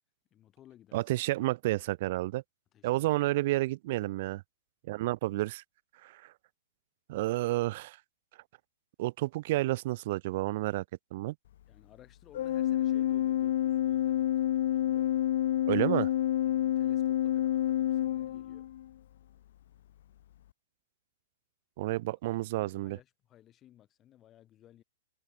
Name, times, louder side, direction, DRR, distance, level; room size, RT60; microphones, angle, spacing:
voice 1, 0.3-1.0 2.7-3.1 11.7-15.2 16.4-18.7 22.6-24.8, left 12 dB, 25° left, 5.6 m, -58 dB
voice 2, 0.9-2.4 2.8-4.4 4.9-5.6 6.0-6.3 7.1-8.0 9.0-10.8 11.1-11.3 15.7-16.1 21.8-23.0, right 18 dB, 50° right, 0.5 m, -30 dB
Organ, 12.3-18.9, left 12 dB, 65° left, 0.5 m, -28 dB
hypercardioid pair, 140°, 0 cm